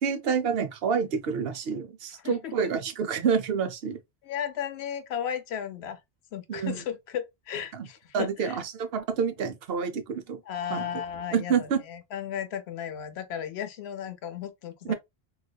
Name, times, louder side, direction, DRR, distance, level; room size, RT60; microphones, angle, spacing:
voice 1, 0.0-4.0 6.5-6.8 7.7-7.9 8.1-10.4 10.7-10.9 11.3-11.8 14.9-15.0, right 6 dB, 70° right, 0.8 m, -28 dB
voice 2, 2.1-2.5 4.2-6.0 6.3-8.6 10.5-14.9, left 9 dB, 80° left, 0.9 m, -35 dB
3.9 x 2.4 x 2.2 m
omnidirectional pair, 1.1 m